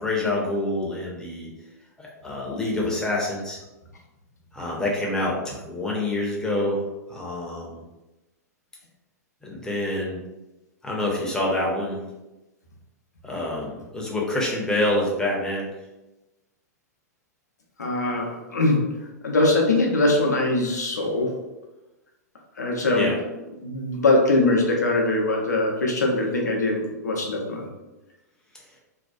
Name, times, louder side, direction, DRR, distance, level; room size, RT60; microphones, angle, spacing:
voice 1, 0.0-1.5 2.0-3.6 4.5-6.8 7.1-7.8 9.4-10.2 10.8-12.0 13.2-15.7 22.9-23.1, left 1 dB, 5° left, -4 dB, 0.7 m, -27 dB
voice 2, 17.8-21.4 22.6-23.1 23.6-27.7, left 2 dB, 75° left, 0 dB, 0.6 m, -22 dB
2.6 x 2.3 x 2.3 m, 1.0 s
figure-of-eight pair, 100°, 9 cm